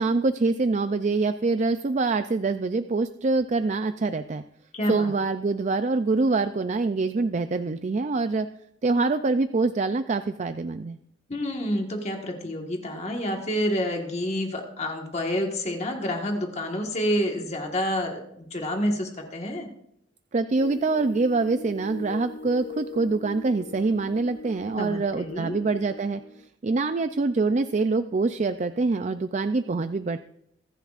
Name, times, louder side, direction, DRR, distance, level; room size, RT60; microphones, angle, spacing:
voice 1, 0.0-4.4 4.9-8.5 8.8-11.0 20.3-26.2 26.6-30.2, right 3 dB, 40° right, 10 dB, 0.4 m, -25 dB
voice 2, 4.7-5.1 11.3-19.7 24.8-25.6, equal, 35° left, 2 dB, 1.5 m, -28 dB
sound 1, 20.6-26.5, left 2 dB, 60° left, 0.9 m, -41 dB
25.0 x 10.5 x 2.5 m, 0.73 s
head